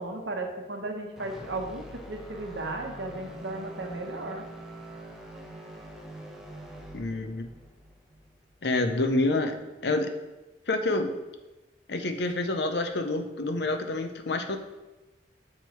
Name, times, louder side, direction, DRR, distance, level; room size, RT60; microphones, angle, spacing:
voice 1, 0.0-4.4, right 2 dB, 90° right, 3 dB, 1.1 m, -35 dB
sound 1, 1.2-9.3, right 1 dB, 5° right, 0.9 m, -45 dB
voice 2, 6.9-7.5 8.6-9.6 9.8-10.1 10.7-11.2 11.9-14.6, left 2 dB, 65° left, 7 dB, 0.7 m, -27 dB
7.4 x 4.6 x 4.5 m, 1.1 s
head